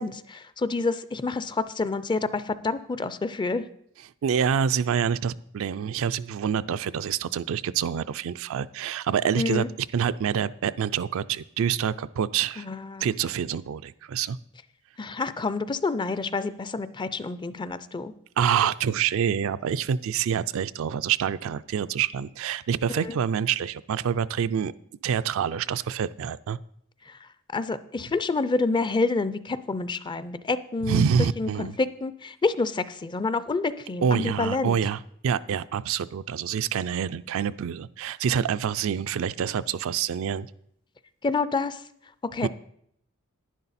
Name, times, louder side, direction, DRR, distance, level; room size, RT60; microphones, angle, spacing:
voice 1, 0.0-3.6 9.4-9.7 12.6-13.1 15.0-18.1 23.0-23.2 27.1-27.2 27.5-31.0 31.4-34.8 41.2-41.8 42.3-42.5, left 3 dB, 20° left, 14 dB, 0.4 m, -28 dB
voice 2, 4.2-9.7 9.9-12.7 13.0-14.4 18.4-24.7 25.0-26.6 30.8-31.8 34.0-40.5 42.4-42.5, right 8 dB, 65° right, 14 dB, 0.4 m, -26 dB
11.0 x 10.0 x 4.1 m, 0.70 s
head